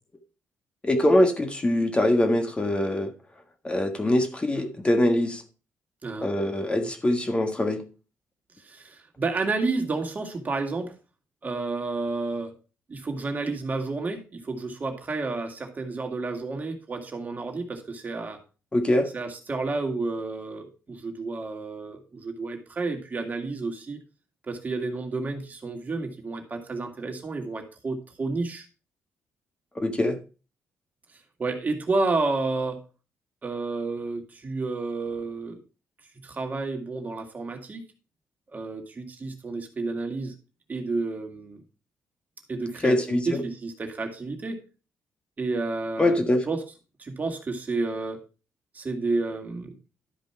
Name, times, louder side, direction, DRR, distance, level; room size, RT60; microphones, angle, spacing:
voice 1, 0.8-3.1 3.6-5.4 6.2-7.8 18.7-19.1 29.8-30.2 42.8-43.4 46.0-46.4, left 1 dB, 20° left, 6 dB, 1.6 m, -23 dB
voice 2, 8.6-10.9 11.4-12.5 12.9-18.4 19.1-24.0 24.5-28.7 31.4-32.8 33.4-35.6 36.2-37.8 38.5-40.3 40.7-41.6 42.5-44.6 45.4-46.6 47.0-48.2 48.7-49.7, right 3 dB, 35° right, 5 dB, 2.0 m, -30 dB
12.0 x 5.2 x 4.5 m, 0.33 s
cardioid pair, 85°, 5 cm